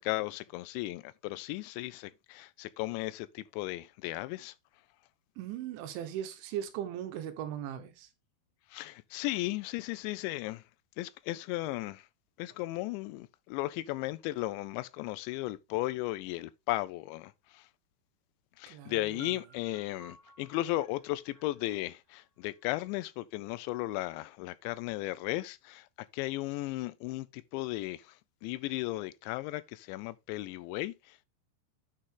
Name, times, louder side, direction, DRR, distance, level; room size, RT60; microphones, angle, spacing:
voice 1, 0.0-4.5 8.7-10.6 11.0-12.1 12.4-17.7 18.6-25.9 26.1-28.2 28.4-31.3, left 17 dB, 85° left, 2.9 m, -35 dB
voice 2, 5.4-8.1 18.7-19.4, right 10 dB, 85° right, 3.4 m, -39 dB
sound 1, 19.2-23.0, right 3 dB, 45° right, 4.0 m, -58 dB
9.0 x 5.6 x 3.8 m
omnidirectional pair, 5.3 m